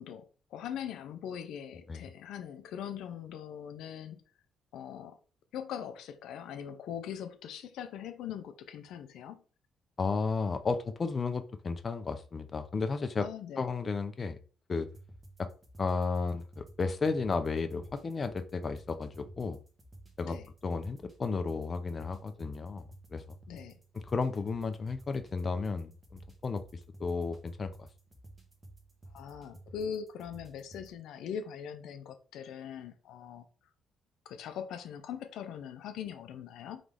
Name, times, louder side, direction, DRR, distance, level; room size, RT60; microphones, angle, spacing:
voice 1, 0.0-4.2 4.7-5.2 5.5-9.4 13.2-13.6 20.3-20.5 23.5-23.8 29.1-33.5 34.3-36.8, left 8 dB, 85° left, 0.5 m, -41 dB
voice 2, 10.0-13.3 13.6-14.4 14.7-14.9 15.4-15.5 15.8-19.6 20.2-23.2 24.1-26.6 27.0-27.9, left 4 dB, 35° left, 0.5 m, -33 dB
sound 1, 14.9-30.9, right 1 dB, 25° right, 1.2 m, -54 dB
3.8 x 3.0 x 3.4 m
cardioid pair, 90°, 0 cm